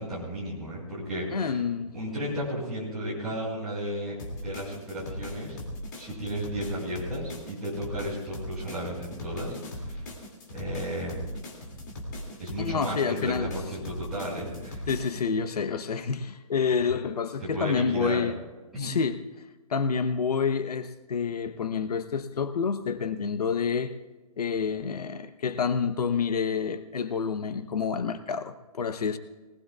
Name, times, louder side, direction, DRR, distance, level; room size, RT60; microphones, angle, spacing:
voice 1, 0.0-1.6 1.9-5.6 6.0-10.1 10.5-11.2 12.4-14.9 17.4-18.3 18.7-18.9, equal, ahead, -11 dB, 5.3 m, -34 dB
voice 2, 1.3-1.9 12.6-13.5 14.9-18.4 18.8-19.2 19.7-23.9 24.4-29.2, left 6 dB, 80° left, 10 dB, 0.9 m, -28 dB
sound 1, 4.2-15.2, left 1 dB, 30° left, 2.4 m, -39 dB
21.5 x 20.0 x 2.4 m, 1.2 s
hypercardioid pair, 180°, 20 cm